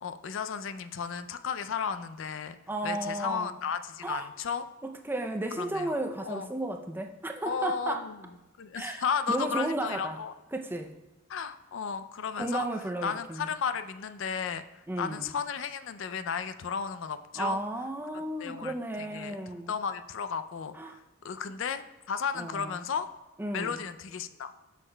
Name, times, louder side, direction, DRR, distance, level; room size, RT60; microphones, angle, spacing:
voice 1, 0.0-2.6 2.8-4.7 5.6-5.9 6.2-6.5 7.4-8.2 8.6-10.3 11.3-12.7 13.0-14.6 15.0-17.6 18.1-23.1 23.5-24.5, left 6 dB, 60° left, 11 dB, 0.4 m, -34 dB
voice 2, 2.7-3.5 4.0-4.3 4.8-8.1 8.7-10.2 10.5-11.0 12.4-13.5 14.9-15.3 17.4-19.7 20.7-21.0 22.3-22.7 23.4-23.8, right 1 dB, 10° right, 4 dB, 0.4 m, -34 dB
13.0 x 6.5 x 2.2 m, 1.1 s
head